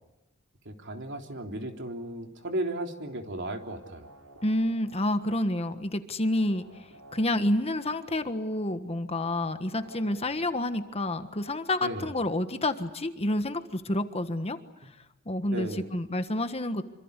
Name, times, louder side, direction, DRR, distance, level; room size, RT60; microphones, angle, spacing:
voice 1, 0.7-4.1 11.8-12.2 15.5-15.9, right 1 dB, 60° right, 3 dB, 3.5 m, -35 dB
sound 1, 3.7-5.8 6.3-8.7 9.2-11.6, right 1 dB, 85° right, 6.9 m, -53 dB
voice 2, 4.4-6.7 7.1-14.6 15.2-16.8, left 1 dB, 30° left, 9 dB, 1.5 m, -29 dB
27.0 x 25.5 x 8.3 m, 0.96 s
head